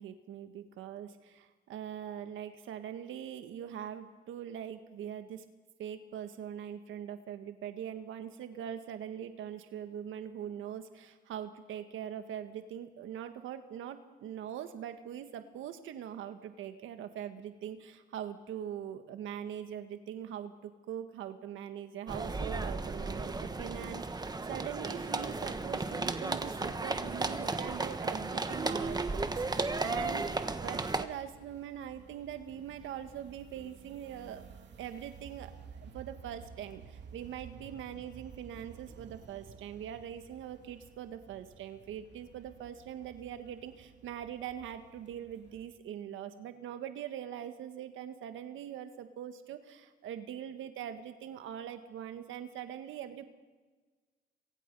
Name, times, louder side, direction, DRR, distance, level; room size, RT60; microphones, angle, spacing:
voice 1, 0.0-5.4 5.8-34.4 34.8-53.2, right 9 dB, 85° right, 8 dB, 1.6 m, -42 dB
sound 1, 22.1-31.0, right 3 dB, 20° right, 1.3 m, -34 dB
sound 2, 29.3-45.7, right 6 dB, 65° right, 2.6 m, -54 dB
27.0 x 23.0 x 5.5 m, 1.3 s
cardioid pair, 90°, 20 cm